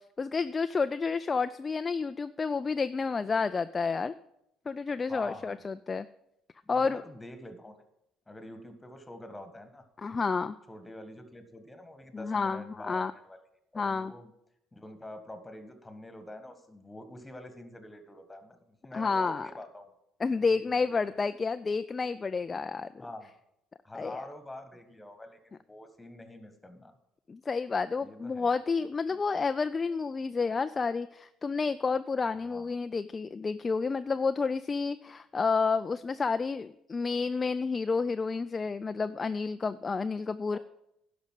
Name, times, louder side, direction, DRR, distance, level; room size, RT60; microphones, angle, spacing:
voice 1, 0.2-4.1 4.7-6.1 6.7-7.0 10.0-10.6 12.1-13.1 13.8-14.1 18.9-19.5 20.2-22.9 23.9-24.3 27.3-40.6, left 4 dB, 30° left, 11 dB, 0.4 m, -30 dB
voice 2, 5.1-5.6 6.6-7.8 8.3-9.8 10.7-13.4 13.7-14.3 14.7-19.9 20.3-21.0 22.5-22.6 23.0-23.3 23.8-25.4 25.7-27.0 28.0-28.5 29.1-29.4 32.5-32.7 40.5-40.6, left 1 dB, 15° left, 9 dB, 1.6 m, -46 dB
11.5 x 5.1 x 7.4 m, 0.81 s
hypercardioid pair, 65°, 0 cm